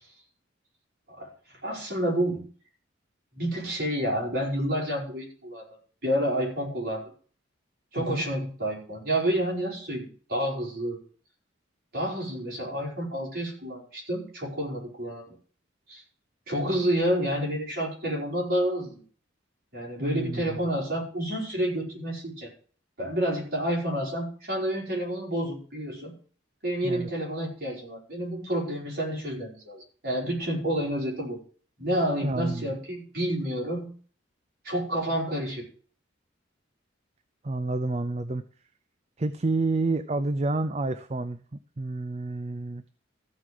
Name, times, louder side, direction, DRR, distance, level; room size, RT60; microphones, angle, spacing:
voice 1, 1.1-2.4 3.3-5.7 6.0-7.0 7.9-11.0 11.9-15.3 15.9-16.0 16.5-19.0 19.7-22.5 23.0-26.1 26.6-31.4 31.8-33.9 34.6-35.6, equal, 50° right, -2 dB, 4.9 m, -29 dB
voice 2, 20.0-20.5 26.8-27.1 32.2-32.7 37.4-38.4 39.2-41.4 41.8-42.8, right 2 dB, 35° right, 10 dB, 0.5 m, -29 dB
14.0 x 4.8 x 7.7 m, 0.44 s
head